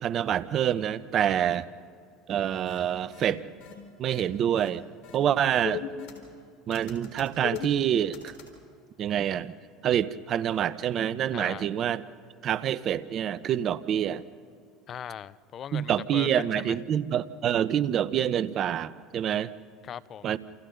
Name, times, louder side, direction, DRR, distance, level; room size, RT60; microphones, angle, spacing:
voice 1, 0.0-1.7 2.3-3.4 4.0-4.8 5.1-5.9 6.7-8.3 9.0-9.5 9.8-12.0 12.4-14.2 15.7-19.5 20.2-20.4, right 10 dB, 45° right, 16 dB, 0.8 m, -27 dB
sound 1, 2.6-2.8 3.1-3.3 3.6-3.7 4.1-4.2 4.6-4.7 5.0-5.2 5.5-6.4 6.7-8.5, left 11 dB, 70° left, 4.4 m, -38 dB
voice 2, 11.3-11.7 14.9-16.8 19.8-20.3, left 9 dB, 45° left, 18 dB, 0.7 m, -39 dB
28.5 x 28.5 x 4.0 m, 2.2 s
hypercardioid pair, 85°, 0 cm